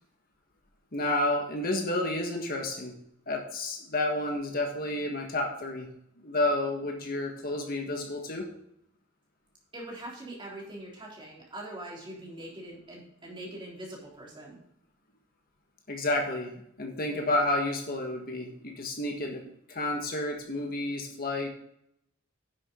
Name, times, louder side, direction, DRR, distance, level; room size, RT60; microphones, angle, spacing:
voice 1, 0.9-2.9 3.3-5.9 6.2-8.4 15.9-19.4 19.7-21.5, left 2 dB, 45° left, 2 dB, 1.6 m, -30 dB
voice 2, 9.7-14.6, right 1 dB, 25° right, -4 dB, 3.7 m, -42 dB
10.5 x 7.4 x 3.7 m, 0.75 s
head